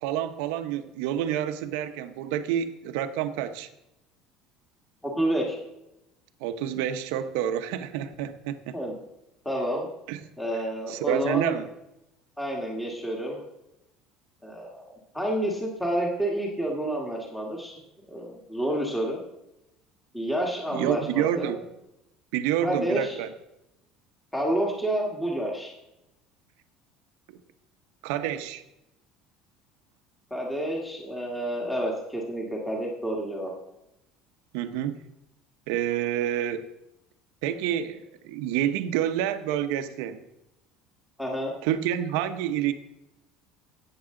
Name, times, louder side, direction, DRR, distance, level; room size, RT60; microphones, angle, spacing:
voice 1, 0.0-3.7 6.4-8.8 10.1-10.2 10.5-10.6 10.9-11.7 20.7-21.6 22.3-23.3 27.3-27.4 28.0-28.6 34.5-35.0 35.7-36.7 37.4-40.2 41.6-42.7, right 10 dB, 85° right, 9 dB, 0.9 m, -28 dB
voice 2, 5.0-5.6 8.7-8.9 9.5-9.9 10.4-11.6 12.4-13.4 14.4-17.7 18.1-19.2 20.1-21.6 22.6-23.2 24.3-25.7 30.3-33.5 41.2-41.5, right 1 dB, 5° left, -1 dB, 1.8 m, -29 dB
14.5 x 8.5 x 3.8 m, 0.89 s
cardioid pair, 155°, 0 cm